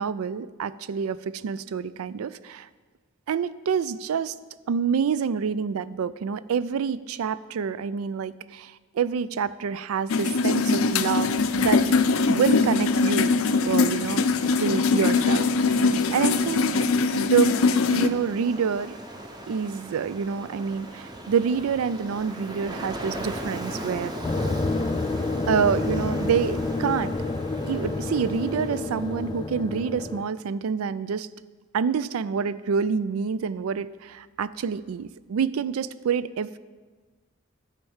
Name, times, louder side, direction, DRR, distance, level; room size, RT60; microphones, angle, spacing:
voice 1, 0.0-2.7 3.3-4.4 4.7-11.8 12.3-13.3 13.7-15.8 16.1-16.8 17.1-17.6 17.8-19.0 19.5-24.2 25.5-27.1 27.6-31.3 31.7-36.6, right 6 dB, 90° right, 17 dB, 0.4 m, -27 dB
sound 1, 10.1-18.1, left 4 dB, 75° left, 0.5 m, -22 dB
Ocean, 10.3-29.4, right 1 dB, 20° right, 0.9 m, -40 dB
sound 2, 24.2-30.2, left 2 dB, 20° left, 0.3 m, -29 dB
10.0 x 4.5 x 7.1 m, 1.4 s
head